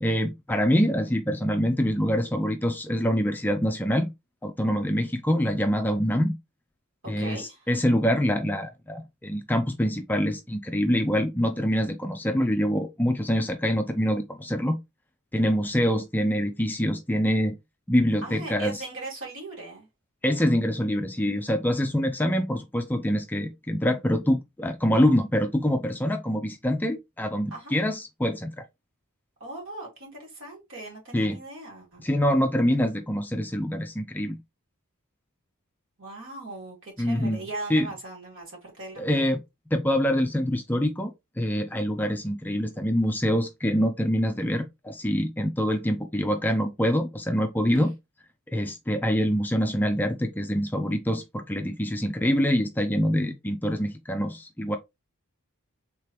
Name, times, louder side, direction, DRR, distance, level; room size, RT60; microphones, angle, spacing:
voice 1, 0.0-4.1 4.4-6.3 7.1-14.8 15.3-17.6 17.9-18.8 20.2-28.6 31.1-31.4 32.0-34.4 37.0-37.4 37.7-37.9 39.0-39.4 39.7-47.9 48.5-54.8, equal, 10° left, 0.4 m, -25 dB
voice 2, 7.0-7.7 18.2-19.9 27.5-27.7 29.4-32.1 36.0-39.3 47.7-47.9, right 2 dB, 60° right, 2.1 m, -39 dB
3.7 x 3.3 x 2.9 m
head